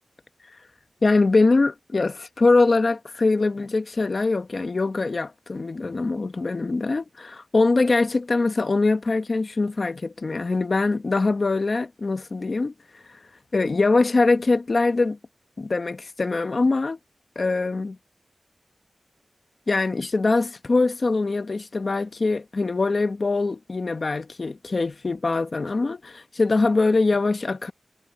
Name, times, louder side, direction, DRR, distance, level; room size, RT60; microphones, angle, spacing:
voice 1, 1.0-12.7 13.5-15.2 15.6-17.0 17.3-18.0 19.7-27.7, left 3 dB, 55° left, 1.2 m, -23 dB
wide cardioid pair, 75°, 0 cm